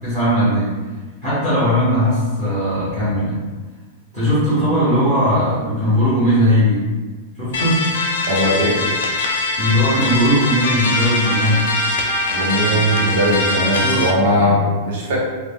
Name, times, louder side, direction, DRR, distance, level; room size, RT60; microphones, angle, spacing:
voice 1, 0.0-0.8 1.2-3.4 4.1-6.9 7.4-7.8 9.6-11.7 12.6-13.1 13.8-14.1, equal, 15° right, -12 dB, 0.7 m, -18 dB
sound 1, 7.5-14.1, left 2 dB, 85° left, 0.4 m, -22 dB
voice 2, 8.2-8.8 12.3-15.2, equal, 50° right, -4 dB, 0.7 m, -19 dB
2.4 x 2.0 x 3.3 m, 1.3 s
supercardioid pair, 180°, 0 cm